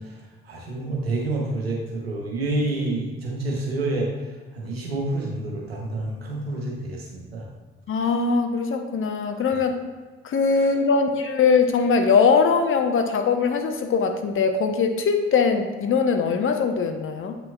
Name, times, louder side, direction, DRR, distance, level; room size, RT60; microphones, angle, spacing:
voice 1, 0.0-4.1 4.5-7.5 9.5-9.6 10.6-10.7, right 2 dB, 90° right, -1 dB, 0.9 m, -28 dB
voice 2, 7.9-9.7 10.2-17.4, left 5 dB, 45° left, 6 dB, 0.8 m, -21 dB
7.7 x 5.9 x 2.3 m, 1.4 s
figure-of-eight pair, 45°, 30 cm